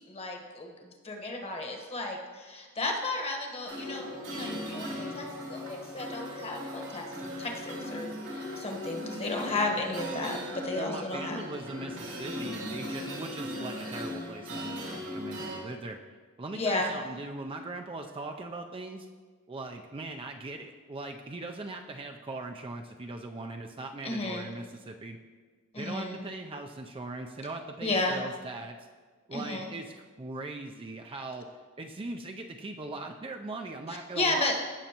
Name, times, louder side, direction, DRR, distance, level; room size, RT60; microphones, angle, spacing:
voice 1, 0.1-0.7 1.0-7.0 7.4-8.1 8.6-11.4 16.5-16.9 24.0-24.5 25.7-26.2 27.8-28.2 29.3-29.7 34.2-34.5, left 2 dB, 30° left, 2 dB, 1.2 m, -33 dB
sound 1, 3.6-15.6, left 1 dB, 85° right, 2.3 m, -38 dB
voice 2, 10.8-16.0 16.4-19.1 19.5-25.2 25.8-28.9 29.3-31.5 31.8-34.6, right 2 dB, 25° right, 3 dB, 0.5 m, -40 dB
16.0 x 6.4 x 2.9 m, 1.5 s
head